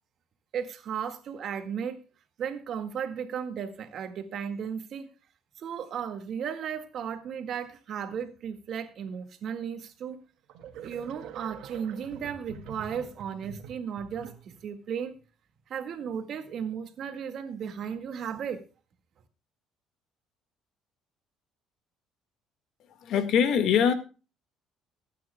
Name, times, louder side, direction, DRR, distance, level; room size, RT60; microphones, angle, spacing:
voice 1, 0.5-2.0 2.4-5.1 5.6-10.2 10.8-15.2 15.7-18.6, right 7 dB, 55° right, 7 dB, 1.8 m, -35 dB
sound 1, 9.8-9.9 10.5-14.7, right 7 dB, 75° right, 2.0 m, -45 dB
voice 2, 23.0-23.9, left 8 dB, 65° left, 9 dB, 1.6 m, -22 dB
23.5 x 9.3 x 2.2 m, 0.34 s
cardioid pair, 130°, 0 cm